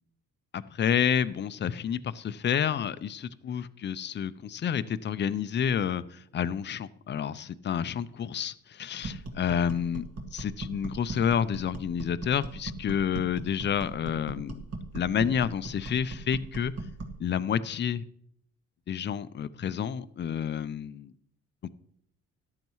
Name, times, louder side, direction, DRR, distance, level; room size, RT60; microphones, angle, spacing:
voice 1, 0.5-10.1 10.3-14.6 14.9-16.7 17.2-18.0 18.9-21.1, left 8 dB, 35° left, 14 dB, 0.5 m, -29 dB
sound 1, 9.0-17.2, right 3 dB, 55° right, 2.2 m, -39 dB
13.5 x 10.5 x 3.1 m, 0.70 s
cardioid pair, 90°, 30 cm